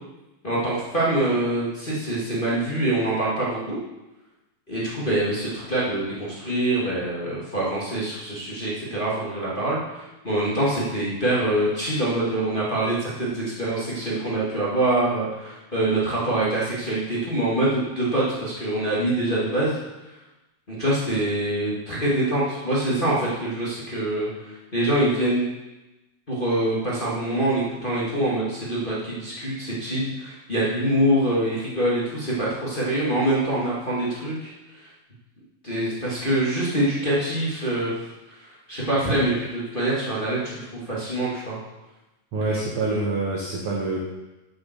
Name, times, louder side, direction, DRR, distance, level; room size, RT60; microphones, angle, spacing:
voice 1, 0.4-3.8 4.7-19.8 20.7-25.5 26.3-34.9 35.6-37.9 38.3-41.6 42.4-42.6 42.8-43.0, right 1 dB, 20° left, -7 dB, 1.8 m, -25 dB
voice 2, 42.3-44.0, right 3 dB, 60° right, -2 dB, 1.5 m, -26 dB
7.7 x 7.6 x 6.7 m, 1.0 s
omnidirectional pair, 4.0 m